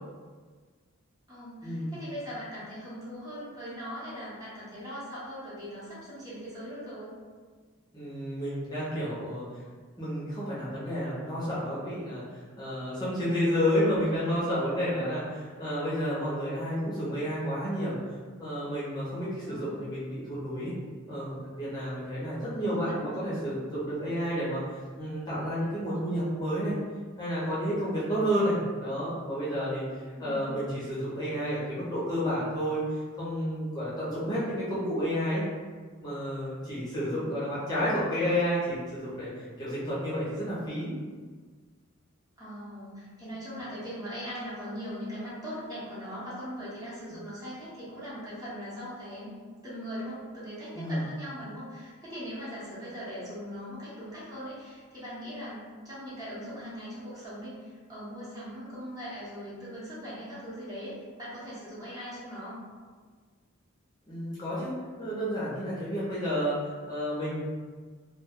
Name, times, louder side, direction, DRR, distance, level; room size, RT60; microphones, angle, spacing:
voice 1, 1.3-7.1 19.4-19.9 22.3-23.2 30.2-30.5 36.9-37.3 42.4-49.3 49.6-62.6, equal, 20° right, -9 dB, 0.9 m, -40 dB
voice 2, 7.9-9.4 10.0-12.2 12.6-17.9 18.4-20.7 21.1-26.7 27.2-29.8 30.2-35.4 36.0-40.9 50.7-51.0 64.1-64.7 65.0-67.4, equal, 20° left, -10 dB, 0.7 m, -30 dB
2.3 x 2.2 x 3.5 m, 1.5 s
head